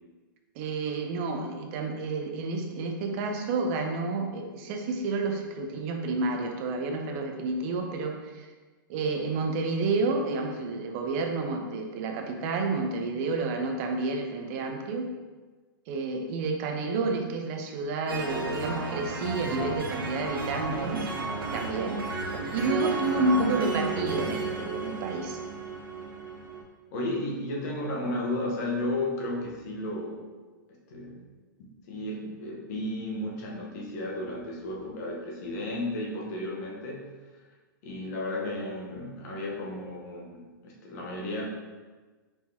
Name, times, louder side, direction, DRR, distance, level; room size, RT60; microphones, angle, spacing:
voice 1, 0.6-8.5 8.9-15.1 15.9-21.1 21.5-22.0 22.5-25.4, right 3 dB, 40° right, 3 dB, 0.6 m, -30 dB
sound 1, 18.1-26.6, right 3 dB, 90° right, 1.0 m, -32 dB
voice 2, 23.1-23.5 26.9-30.3 30.7-31.2 31.9-37.1 37.8-41.4, left 1 dB, 50° left, -2 dB, 1.1 m, -34 dB
4.5 x 3.5 x 2.8 m, 1.3 s
hypercardioid pair, 135°, 12 cm